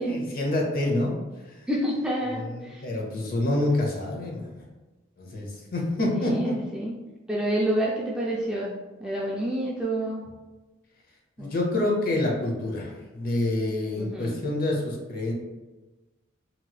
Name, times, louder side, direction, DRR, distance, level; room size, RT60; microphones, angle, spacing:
voice 1, 0.0-1.7 2.3-4.6 5.2-6.6 11.4-15.3, left 1 dB, 50° left, -1 dB, 0.7 m, -27 dB
voice 2, 1.7-2.8 6.2-6.9 7.3-8.7 9.0-10.3 11.4-11.5 14.0-14.4, right 1 dB, 5° right, -4 dB, 0.3 m, -28 dB
3.0 x 2.9 x 2.3 m, 1.2 s
head